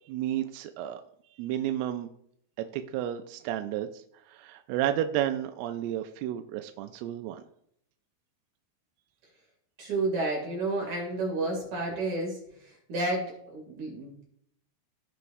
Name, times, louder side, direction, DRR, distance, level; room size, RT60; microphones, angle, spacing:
voice 1, 0.1-1.0 1.3-2.1 2.7-3.9 4.3-7.4, right 11 dB, 80° right, 7 dB, 2.4 m, -31 dB
voice 2, 9.8-14.2, right 2 dB, 50° right, -2 dB, 3.5 m, -31 dB
16.5 x 5.9 x 2.6 m, 0.70 s
omnidirectional pair, 4.9 m